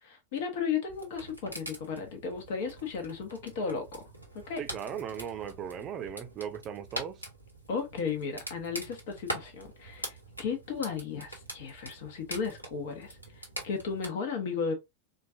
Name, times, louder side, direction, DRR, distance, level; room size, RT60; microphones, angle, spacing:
voice 1, 0.0-4.0 4.5-4.6 7.7-14.7, left 6 dB, 50° left, 1.0 m, -35 dB
sound 1, 0.9-14.1, right 1 dB, 90° left, 1.3 m, -44 dB
voice 2, 4.6-7.2, right 8 dB, 30° right, 0.7 m, -38 dB
4.3 x 2.5 x 2.5 m
figure-of-eight pair, 90°, 0 cm